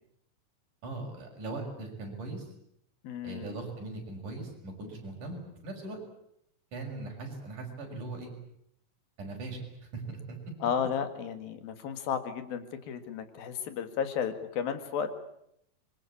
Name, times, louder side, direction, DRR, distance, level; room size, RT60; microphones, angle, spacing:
voice 1, 0.8-2.5 3.2-6.0 6.7-8.3 9.2-9.6 9.9-10.4, right 2 dB, 60° right, 2 dB, 7.6 m, -39 dB
voice 2, 3.0-3.5 10.6-15.1, left 7 dB, 80° left, 9 dB, 3.8 m, -33 dB
26.0 x 23.5 x 8.6 m, 0.75 s
omnidirectional pair, 4.1 m